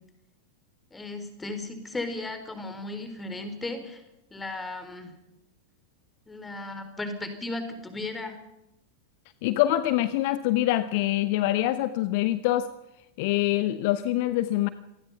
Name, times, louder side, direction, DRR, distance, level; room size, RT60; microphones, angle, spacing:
voice 1, 0.9-4.0 4.3-5.1 6.3-8.4, left 2 dB, 10° left, 8 dB, 4.2 m, -35 dB
voice 2, 9.4-12.7 13.2-14.7, left 14 dB, 50° left, 14 dB, 0.9 m, -25 dB
26.5 x 19.0 x 5.7 m, 0.89 s
figure-of-eight pair, 90°, 0 cm